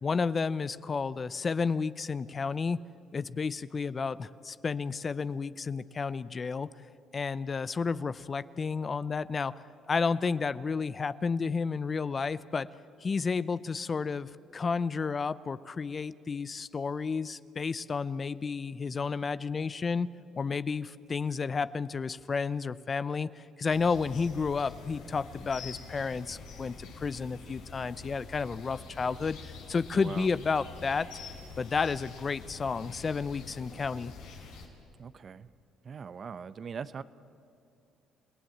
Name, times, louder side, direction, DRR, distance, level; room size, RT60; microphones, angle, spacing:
voice 1, 0.0-2.8 3.1-6.7 7.1-9.6 9.9-12.7 13.0-20.1 20.3-29.4 29.7-31.1 31.6-34.1, left 5 dB, 40° left, 16 dB, 0.7 m, -31 dB
sound 1, 23.7-34.7, left 4 dB, 85° left, 4.5 m, -46 dB
voice 2, 29.9-30.3 35.0-35.5 35.8-37.0, right 6 dB, 45° right, 15 dB, 0.8 m, -40 dB
29.0 x 17.5 x 8.6 m, 2.6 s
supercardioid pair, 65°, 0 cm